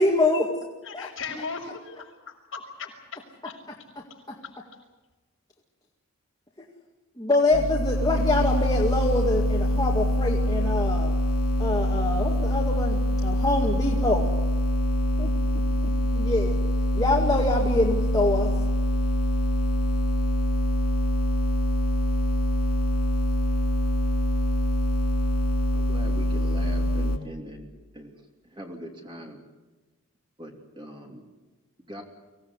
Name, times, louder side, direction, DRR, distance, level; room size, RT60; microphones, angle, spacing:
voice 1, 0.0-0.5 0.9-1.1 7.2-11.1 11.6-14.3 15.2-15.3 16.1-16.6 16.9-18.5, left 2 dB, 15° left, -2 dB, 2.1 m, -25 dB
voice 2, 0.8-3.2 3.4-3.6, left 5 dB, 60° left, 0 dB, 6.3 m, -37 dB
sound 1, 7.5-27.2, equal, 90° left, 3.6 m, -24 dB
voice 3, 25.7-28.2 28.4-29.4 30.4-31.2 31.8-32.0, equal, 20° right, 2 dB, 3.1 m, -41 dB
24.5 x 17.5 x 9.7 m, 1.2 s
head